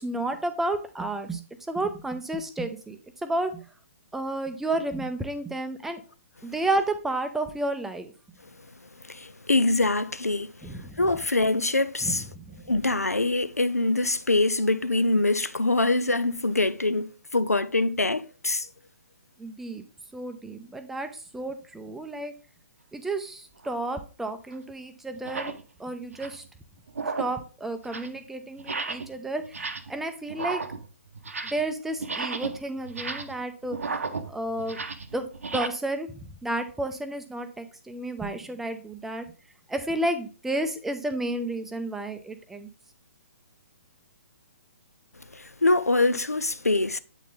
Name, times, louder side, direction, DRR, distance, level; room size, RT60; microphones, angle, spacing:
voice 1, 0.0-3.6 4.1-6.0 6.4-8.1 10.6-11.0 12.0-12.6 19.4-19.8 20.1-22.3 22.9-25.5 25.8-26.4 27.2-30.6 31.5-33.8 34.3-34.8 35.1-39.3 39.7-42.7, right 2 dB, 5° right, 0.5 m, -31 dB
voice 2, 9.0-12.2 12.7-18.7 45.3-47.0, left 2 dB, 85° left, 0.4 m, -24 dB
sound 1, 23.6-23.8 24.5-24.6 25.2-25.6 26.0-26.5 26.9-27.4 27.7-28.2 28.6-29.1 29.4-30.0 30.3-31.7 32.0-35.7, right 4 dB, 65° right, 0.8 m, -34 dB
8.0 x 4.2 x 3.4 m
figure-of-eight pair, 125°, 8 cm